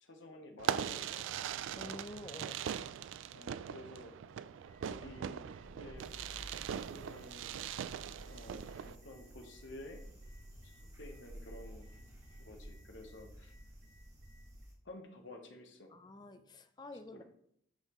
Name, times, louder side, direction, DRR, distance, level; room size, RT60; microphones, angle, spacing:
voice 1, 0.0-1.4 3.3-4.1 4.8-5.4 5.7-6.4 6.9-7.7 8.3-10.0 10.6-10.7 11.0-11.9 12.4-13.5 14.8-15.9 17.1-17.2, left 1 dB, 70° left, 3 dB, 1.1 m, -52 dB
Fireworks, 0.6-9.0, right 8 dB, 75° right, 0.3 m, -41 dB
voice 2, 1.8-2.7 15.9-17.2, left 2 dB, 20° left, 9 dB, 0.4 m, -49 dB
sound 1, 4.6-14.6, equal, 40° right, 1.2 m, -53 dB
sound 2, 6.0-14.7, right 2 dB, 20° right, 2.1 m, -67 dB
9.0 x 5.6 x 3.0 m, 0.72 s
head